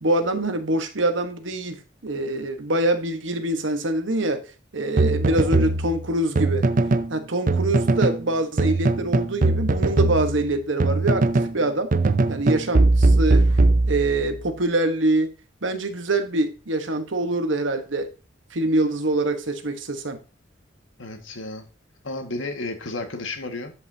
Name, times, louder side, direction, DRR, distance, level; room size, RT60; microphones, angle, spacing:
voice 1, 0.0-4.4 4.7-6.6 7.1-11.9 12.3-13.6 13.9-15.3 15.6-18.1 18.5-20.2, right 2 dB, 75° right, 1.3 m, -24 dB
sound 1, 5.0-7.1 7.5-8.2 8.6-11.6 11.9-14.3, right 2 dB, 45° right, 0.5 m, -20 dB
voice 2, 21.0-21.7 22.0-23.7, left 2 dB, 85° left, 1.8 m, -32 dB
11.5 x 5.6 x 2.8 m
head